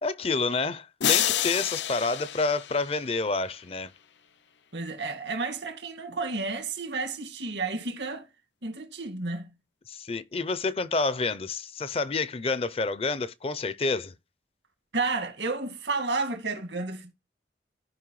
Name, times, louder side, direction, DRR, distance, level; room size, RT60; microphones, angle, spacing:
voice 1, 0.0-3.9 9.9-14.1, left 3 dB, 35° left, 0.5 m, -28 dB
sound 1, 1.0-3.4, left 10 dB, 80° left, 0.6 m, -28 dB
voice 2, 4.7-8.3 8.6-9.5 14.9-17.1, right 3 dB, 90° right, 2.0 m, -31 dB
14.5 x 5.4 x 3.1 m
head